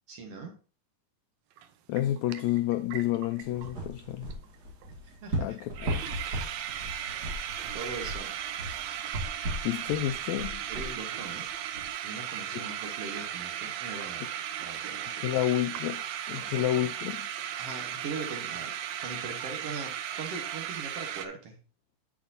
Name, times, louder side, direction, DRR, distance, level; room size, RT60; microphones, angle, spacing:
voice 1, 0.1-0.6 5.2-5.6 7.7-8.3 10.7-11.5 12.0-14.2 14.6-15.2 16.4-16.8 17.6-21.6, right 4 dB, 60° right, 1.9 m, -41 dB
sound 1, 1.6-1.7 2.0-3.7 4.0-4.1 4.3-4.6 4.8-4.9 5.3-5.4 5.6-21.3, right 10 dB, 75° right, 1.6 m, -36 dB
voice 2, 1.9-4.3 5.4-6.0 9.6-10.6 12.5-12.6 15.2-16.0 16.3-17.3, left 13 dB, 85° left, 1.6 m, -30 dB
sound 2, 3.4-11.9, right 1 dB, 35° right, 2.3 m, -37 dB
8.4 x 8.3 x 2.7 m
omnidirectional pair, 3.7 m